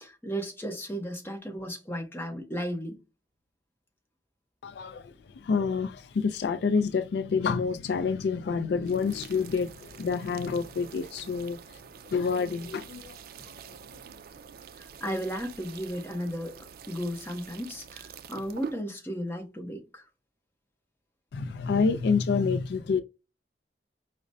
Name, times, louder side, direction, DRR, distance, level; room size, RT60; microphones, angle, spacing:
voice 1, 0.0-3.0 14.8-16.6 16.9-20.0, equal, 10° left, 0.8 m, -35 dB
voice 2, 4.6-11.8 12.1-13.7 21.3-23.0, left 5 dB, 65° left, 0.3 m, -28 dB
sound 1, 8.8-18.8, right 6 dB, 55° right, 0.4 m, -46 dB
4.9 x 2.0 x 2.6 m
head